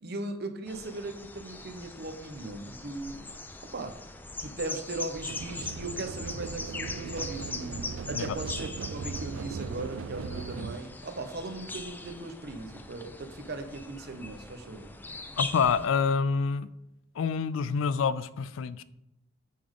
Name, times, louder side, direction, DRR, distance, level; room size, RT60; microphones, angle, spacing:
voice 1, 0.0-3.3 3.7-3.9 4.4-14.9, right 2 dB, 55° right, 7 dB, 0.8 m, -38 dB
sound 1, 0.7-15.9, left 3 dB, 10° left, 0.3 m, -41 dB
sound 2, 5.3-10.8, right 6 dB, 80° right, 0.3 m, -38 dB
voice 2, 15.4-16.7 17.2-18.8, left 5 dB, 80° left, 16 dB, 0.4 m, -27 dB
8.4 x 3.6 x 3.7 m, 0.88 s
head